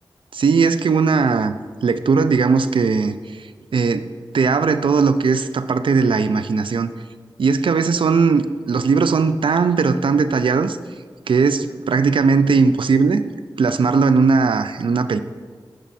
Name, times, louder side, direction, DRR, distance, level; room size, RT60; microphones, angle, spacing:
voice 1, 0.3-1.5 1.8-4.1 4.3-6.9 7.4-10.8 11.3-13.2 13.6-15.2, right 5 dB, 75° right, 11 dB, 0.4 m, -18 dB
9.2 x 6.4 x 4.2 m, 1.5 s
wide cardioid pair, 75°, 9 cm